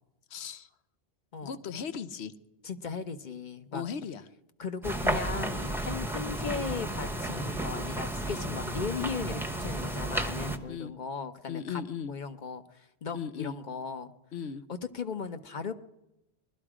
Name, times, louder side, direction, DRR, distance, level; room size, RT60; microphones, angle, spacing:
voice 1, 0.3-0.7 1.4-2.3 3.7-4.3 8.3-8.6 10.7-11.0 11.5-12.1 13.1-13.6 14.3-14.6, left 7 dB, 80° left, 14 dB, 1.0 m, -37 dB
voice 2, 2.6-3.8 4.6-11.8 12.1-14.1 14.7-15.7, left 5 dB, 50° left, 10 dB, 1.0 m, -37 dB
sound 1, 4.8-10.6, right 1 dB, ahead, 0.8 m, -33 dB
20.5 x 13.0 x 4.9 m, 0.90 s
omnidirectional pair, 1.1 m